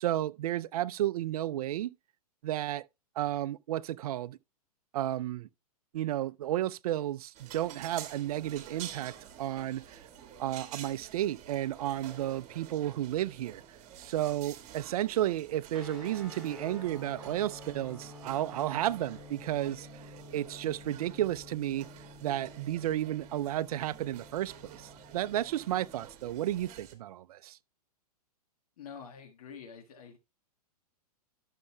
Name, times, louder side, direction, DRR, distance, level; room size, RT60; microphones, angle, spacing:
voice 1, 0.0-1.9 2.4-2.8 3.2-4.4 4.9-5.5 5.9-10.0 10.4-13.6 14.0-19.9 20.3-21.9 22.2-27.6, right 13 dB, 65° right, 0.4 m, -32 dB
sound 1, 7.3-26.9, right 9 dB, 35° right, 1.7 m, -50 dB
sound 2, 15.7-26.1, left 2 dB, ahead, 3.3 m, -50 dB
voice 2, 28.8-30.2, left 6 dB, 65° left, 1.5 m, -47 dB
11.5 x 6.5 x 2.2 m
hypercardioid pair, 120°, 20 cm